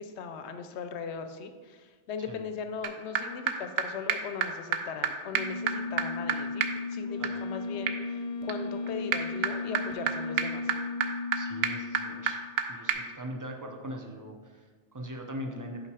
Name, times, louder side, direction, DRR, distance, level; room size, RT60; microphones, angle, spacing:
voice 1, 0.0-10.7, left 6 dB, 90° left, 8 dB, 0.9 m, -39 dB
sound 1, 2.8-2.9 3.2-3.3 3.5-3.6 3.8-3.9 4.1-4.2 4.4-4.5 4.7-4.8 5.0-5.1 5.3-12.6 12.9-13.0, right 4 dB, 70° right, 0.8 m, -30 dB
Wind instrument woodwind instrument, 7.1-11.4, right 1 dB, 50° left, 0.7 m, -48 dB
voice 2, 11.3-12.4 12.7-15.9, equal, 35° right, 3 dB, 0.3 m, -41 dB
5.7 x 4.2 x 4.7 m, 1.5 s
omnidirectional pair, 1.1 m